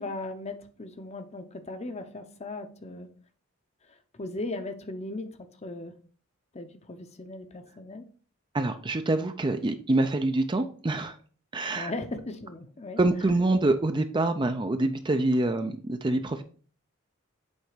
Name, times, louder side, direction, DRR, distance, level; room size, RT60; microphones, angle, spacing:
voice 1, 0.0-3.1 4.2-5.3 5.6-5.9 6.5-8.0 11.7-13.0, left 2 dB, 30° left, 8 dB, 0.7 m, -37 dB
voice 2, 8.5-11.1 11.5-11.9 13.0-16.4, right 2 dB, 20° right, 8 dB, 0.5 m, -26 dB
8.0 x 3.4 x 4.9 m, 0.42 s
head